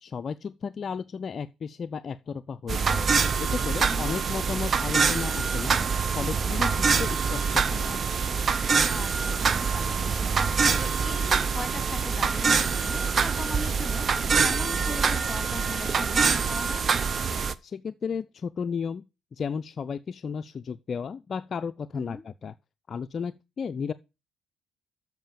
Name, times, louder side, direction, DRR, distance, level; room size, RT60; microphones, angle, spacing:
voice 1, 0.0-3.1 3.4-5.8 6.1-8.0 17.6-19.0 19.3-22.5 22.9-23.9, left 6 dB, 45° left, 0.4 m, -34 dB
sound 1, 2.7-17.5, right 5 dB, 45° right, 0.6 m, -25 dB
voice 2, 3.8-4.1 8.8-16.8 21.9-22.2, left 2 dB, 10° left, 2.9 m, -39 dB
7.3 x 5.9 x 7.2 m
hypercardioid pair, 60°, 0 cm